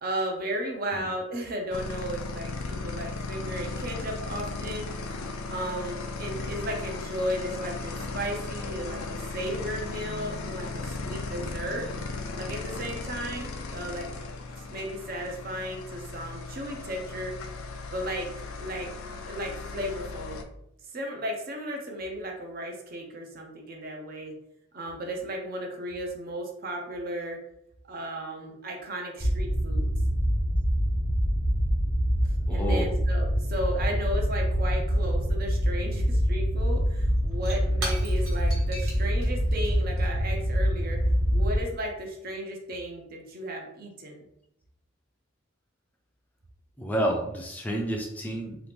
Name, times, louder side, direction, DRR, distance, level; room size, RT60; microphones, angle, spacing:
voice 1, 0.0-5.2 5.5-11.9 12.3-14.2 14.7-17.3 17.9-18.3 18.6-20.4 20.9-24.3 24.7-27.4 27.9-29.9 32.2-41.0 41.3-44.2, equal, 45° right, 1 dB, 0.6 m, -35 dB
sound 1, 1.7-20.4, left 3 dB, 80° left, 0.4 m, -36 dB
sound 2, 29.2-41.6, equal, 25° right, 1.0 m, -25 dB
voice 2, 32.5-32.9 46.8-48.6, equal, 10° left, 0 dB, 0.4 m, -29 dB
Shatter / Crushing, 36.8-41.7, right 2 dB, 80° right, 1.3 m, -41 dB
2.9 x 2.4 x 3.4 m, 0.81 s
head